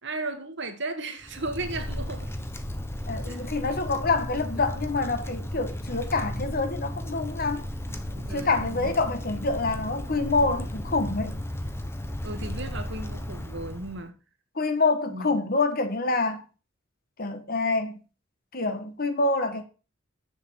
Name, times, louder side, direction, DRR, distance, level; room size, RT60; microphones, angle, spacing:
voice 1, 0.0-2.3 3.3-3.5 7.9-8.9 12.2-14.2 15.1-15.5, right 2 dB, 60° right, 1.9 m, -36 dB
Wind, 1.2-14.0, left 1 dB, 10° left, 1.1 m, -34 dB
voice 2, 3.1-7.6 8.3-11.4 14.5-16.4 17.2-18.0 18.5-19.6, left 3 dB, 45° left, 1.6 m, -26 dB
7.7 x 7.1 x 7.1 m
head